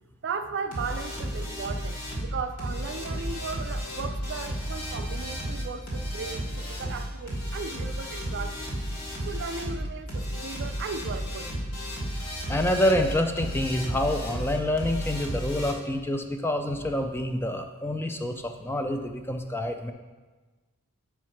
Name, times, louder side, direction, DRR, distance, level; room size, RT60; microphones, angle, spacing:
voice 1, 0.2-8.7 9.3-11.5, right 5 dB, 55° right, 9 dB, 0.5 m, -36 dB
sound 1, 0.7-15.7, equal, 85° left, 2.3 m, -33 dB
voice 2, 12.5-19.9, left 1 dB, 10° left, 5 dB, 0.4 m, -27 dB
7.0 x 4.7 x 5.7 m, 1.3 s
head